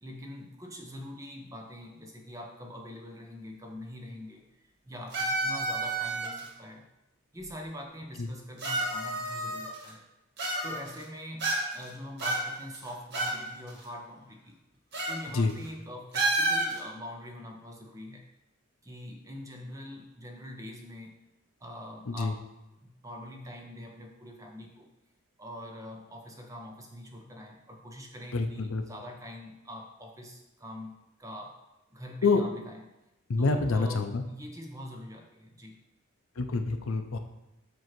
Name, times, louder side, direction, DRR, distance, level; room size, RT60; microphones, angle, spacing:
voice 1, 0.0-4.5 4.8-6.9 7.3-10.0 10.6-14.6 15.1-18.2 18.8-21.2 21.6-22.4 22.8-24.9 25.4-31.6 31.9-32.8 33.4-35.7, equal, 15° right, 2 dB, 0.8 m, -44 dB
sound 1, 5.1-6.5 7.4-7.5 8.6-9.9 10.4-11.0 11.4-11.9 12.2-13.4 13.7-13.8 14.9-15.2 15.5-15.7 16.1-16.8, right 2 dB, 55° right, 1.6 m, -30 dB
voice 2, 28.3-28.8 32.2-32.4 33.3-34.2 36.4-37.2, left 3 dB, 70° left, 6 dB, 0.6 m, -27 dB
7.7 x 2.8 x 5.9 m, 0.93 s
head